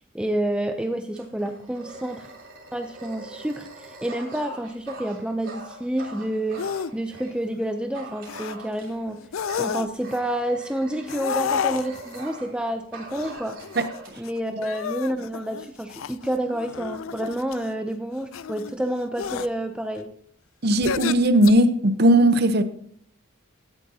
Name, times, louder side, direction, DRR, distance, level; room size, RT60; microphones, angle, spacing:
voice 1, 0.0-2.3 2.7-6.7 6.9-9.2 9.6-13.6 14.2-20.1, right 1 dB, 5° right, 0.4 m, -29 dB
Dog, 1.1-7.3 7.9-9.1 9.5-12.6 12.9-14.1, right 2 dB, 65° right, 3.3 m, -42 dB
sound 1, 6.6-6.9 7.3-7.7 8.3-8.5 9.2-10.2 11.1-12.2 13.1-14.3 14.6-17.7 18.3-18.7 19.2-19.5 20.7-21.5, left 7 dB, 75° left, 0.4 m, -31 dB
voice 2, 20.6-22.6, right 1 dB, 50° right, 0.8 m, -18 dB
16.0 x 10.5 x 2.8 m
head